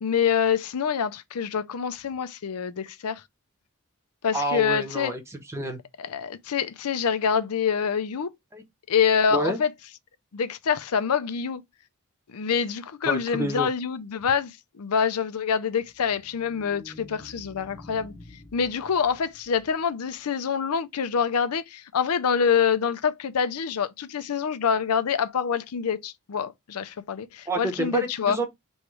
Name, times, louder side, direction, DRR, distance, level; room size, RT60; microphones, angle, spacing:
voice 1, 0.0-3.2 4.2-5.1 6.0-8.3 8.9-9.7 10.3-11.6 12.3-18.1 18.5-28.4, left 7 dB, 85° left, 0.5 m, -26 dB
voice 2, 4.3-5.8 8.5-8.6 9.3-9.6 13.0-13.7 27.5-28.5, right 1 dB, 10° right, 0.8 m, -28 dB
sound 1, 15.8-20.2, left 1 dB, 15° left, 1.2 m, -49 dB
3.1 x 3.1 x 4.7 m
head